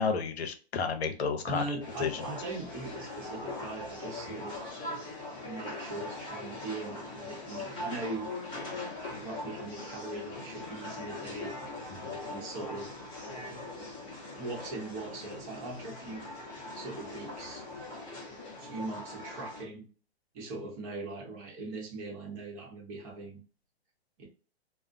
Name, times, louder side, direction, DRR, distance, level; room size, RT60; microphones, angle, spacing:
voice 1, 0.0-1.6 2.0-2.3 11.9-12.2, left 5 dB, 75° left, 0.6 m, -31 dB
voice 2, 1.4-4.6 5.4-8.3 9.0-11.6 12.2-13.0 14.3-16.3 16.7-17.6 18.6-19.9 20.3-23.4 24.2-24.3, right 2 dB, 30° right, 0.8 m, -40 dB
sound 1, 1.8-19.6, left 2 dB, 15° left, 0.8 m, -41 dB
2.4 x 2.0 x 2.5 m
hypercardioid pair, 140°, 32 cm